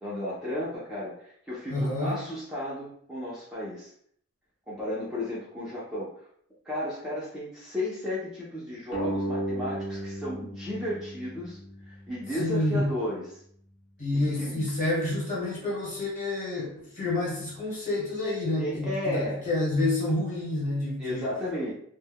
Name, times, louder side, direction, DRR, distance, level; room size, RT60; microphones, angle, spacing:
voice 1, 0.0-3.9 4.7-6.1 6.6-11.6 11.9-13.4 14.1-14.7 18.6-19.4 21.0-21.7, left 1 dB, 5° right, -9 dB, 0.5 m, -34 dB
voice 2, 1.7-2.2 12.4-12.8 14.0-21.3, left 2 dB, 35° left, -6 dB, 1.1 m, -28 dB
sound 1, 8.9-12.1, right 1 dB, 80° left, 0.8 m, -34 dB
2.2 x 2.1 x 3.4 m, 0.65 s
head